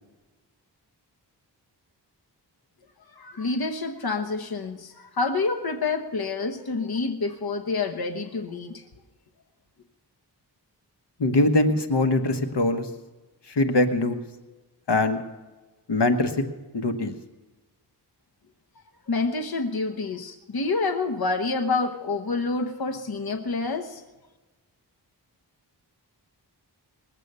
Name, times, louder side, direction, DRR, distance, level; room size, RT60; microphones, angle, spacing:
voice 1, 3.2-8.8 19.1-24.0, left 3 dB, 60° left, 6 dB, 1.1 m, -28 dB
voice 2, 11.2-12.9 13.6-14.2 14.9-15.2 15.9-16.3 16.8-17.1, left 2 dB, 75° left, 8 dB, 1.3 m, -22 dB
20.5 x 8.2 x 6.8 m, 1.2 s
wide cardioid pair, 55°, 42 cm